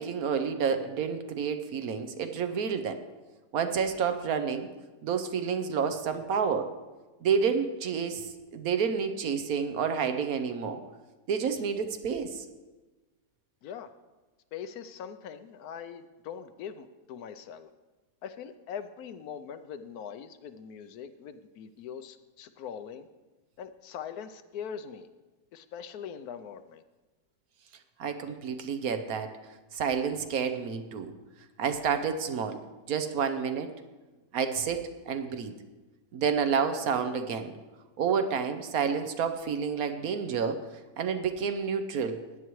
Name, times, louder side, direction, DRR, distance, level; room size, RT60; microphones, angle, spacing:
voice 1, 0.0-3.0 3.5-4.7 5.0-6.7 7.2-10.8 11.3-12.4 28.0-29.3 29.7-31.1 31.6-32.6 32.9-33.7 34.3-35.5 36.1-37.5 38.0-40.7 41.0-42.2, right 6 dB, 75° right, 8 dB, 1.2 m, -29 dB
voice 2, 14.5-17.7 18.2-23.1 23.6-25.1 25.5-26.8, left 7 dB, 80° left, 10 dB, 1.1 m, -42 dB
16.0 x 9.8 x 3.1 m, 1.2 s
omnidirectional pair, 1.6 m